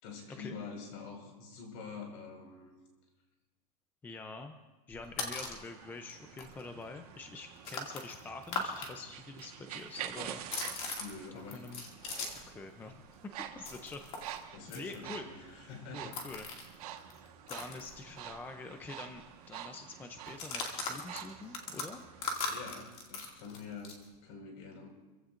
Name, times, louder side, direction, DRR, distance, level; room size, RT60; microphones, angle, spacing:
voice 1, 0.0-2.7 11.0-11.7 14.5-16.2 22.5-24.9, left 5 dB, 55° left, 1 dB, 5.2 m, -46 dB
voice 2, 4.0-4.6 4.9-10.4 11.5-11.8 12.5-13.0 13.2-14.0 14.7-15.3 15.9-16.8 17.5-22.0, left 3 dB, 10° left, 6 dB, 0.6 m, -46 dB
sound 1, 4.9-5.7 6.1-6.2 6.4-8.9 9.2-12.6 12.8-18.5 18.8-18.9 19.2-19.5 20.2-24.1, left 4 dB, 30° left, 2.3 m, -41 dB
sound 2, 5.1-22.8, right 11 dB, 75° right, 1.5 m, -48 dB
27.0 x 15.5 x 2.6 m, 1.2 s
supercardioid pair, 165°, 19 cm